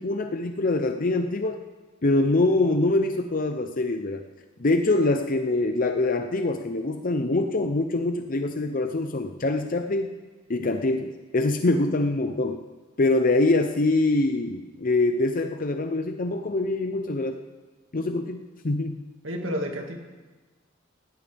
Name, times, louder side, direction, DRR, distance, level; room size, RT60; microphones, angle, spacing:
voice 1, 0.0-1.6 2.0-4.2 4.6-10.1 10.5-12.6 13.0-17.4 17.9-19.0, left 2 dB, 45° left, 6 dB, 0.7 m, -24 dB
voice 2, 19.2-20.0, equal, 75° right, 2 dB, 2.1 m, -30 dB
20.0 x 16.0 x 3.5 m, 1.3 s
head